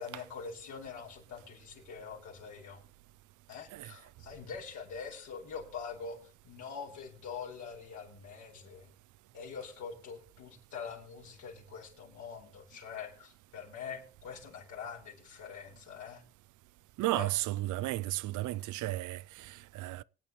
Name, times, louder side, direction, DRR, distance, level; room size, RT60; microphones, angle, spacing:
voice 1, 0.0-2.8 3.5-8.9 9.3-16.2 17.1-17.3, left 6 dB, 75° left, 4.5 m, -44 dB
voice 2, 17.0-20.0, right 17 dB, 80° right, 0.5 m, -34 dB
25.0 x 8.8 x 3.1 m
cardioid pair, 90°, 30 cm